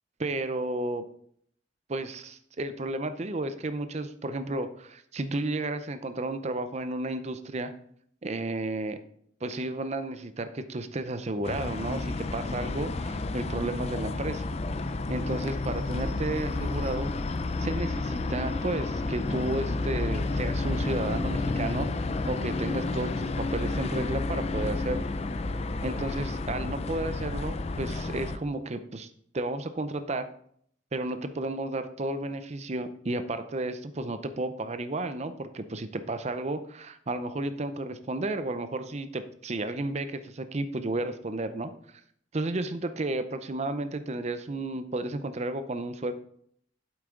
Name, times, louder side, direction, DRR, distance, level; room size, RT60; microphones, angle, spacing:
voice 1, 0.2-1.0 1.9-7.7 8.2-9.0 9.4-14.5 15.1-17.1 17.6-25.1 25.8-29.1 29.3-30.3 30.9-41.7 42.3-46.1, right 2 dB, 35° right, 10 dB, 0.6 m, -32 dB
sound 1, 11.4-28.4, left 2 dB, 35° left, 0.5 m, -31 dB
8.7 x 7.9 x 3.8 m, 0.65 s
head